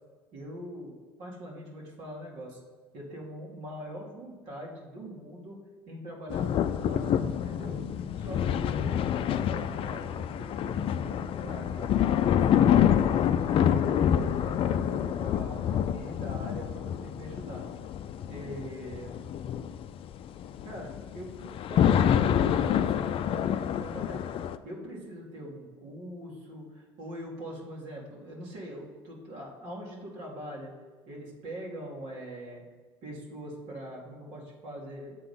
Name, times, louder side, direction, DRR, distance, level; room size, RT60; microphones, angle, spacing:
voice 1, 0.3-2.6 2.9-7.8 8.2-13.2 13.7-17.7 18.3-19.1 20.6-24.2 24.6-30.7 31.1-32.6 33.0-35.2, right 1 dB, 65° right, -3 dB, 2.3 m, -42 dB
sound 1, 6.3-24.6, left 9 dB, 45° left, 0.4 m, -27 dB
7.6 x 3.9 x 5.7 m, 1.5 s
hypercardioid pair, 80°, 13 cm